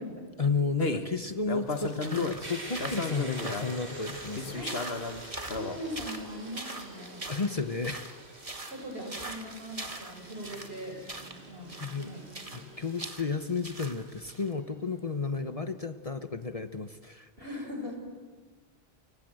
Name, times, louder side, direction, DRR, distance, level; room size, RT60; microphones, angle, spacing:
voice 1, 0.4-4.6 7.3-8.0 11.8-12.1 12.5-17.6, left 4 dB, 35° left, 10 dB, 1.0 m, -32 dB
sound 1, 0.8-1.1 1.5-2.4 2.8-3.7 4.3-5.8, left 3 dB, 70° left, 1.9 m, -34 dB
sound 2, 1.7-14.5, right 2 dB, 35° right, 1.9 m, -43 dB
sound 3, 2.4-15.1, right 1 dB, 85° right, 4.0 m, -47 dB
voice 2, 5.4-7.2 8.6-12.2 17.4-18.0, equal, 65° right, 3 dB, 6.2 m, -41 dB
28.5 x 25.5 x 7.9 m, 1.4 s
omnidirectional pair, 1.1 m